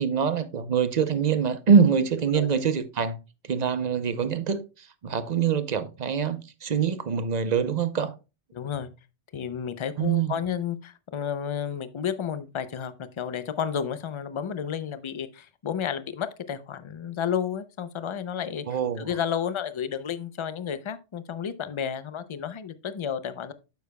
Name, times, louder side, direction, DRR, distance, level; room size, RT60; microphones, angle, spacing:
voice 1, 0.0-3.2 3.4-8.1 10.0-10.3 18.7-19.1, right 6 dB, 45° right, 0.6 m, -24 dB
voice 2, 8.5-8.9 9.3-18.7 19.0-23.5, left 8 dB, 45° left, 0.4 m, -31 dB
9.4 x 6.9 x 2.2 m
omnidirectional pair, 1.2 m